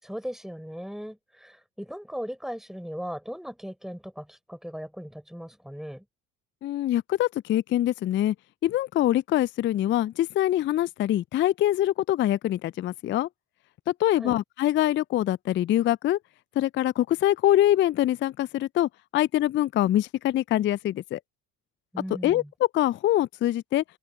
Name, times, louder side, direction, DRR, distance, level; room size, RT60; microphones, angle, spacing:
voice 1, 0.0-6.0 14.2-14.4 21.9-22.5, equal, ahead, 5.3 m, -38 dB
voice 2, 6.6-8.3 8.6-13.3 13.9-16.2 16.6-21.2 22.2-22.4 22.7-23.8, left 13 dB, 25° left, 0.4 m, -24 dB
open air
hypercardioid pair, 60°, 47 cm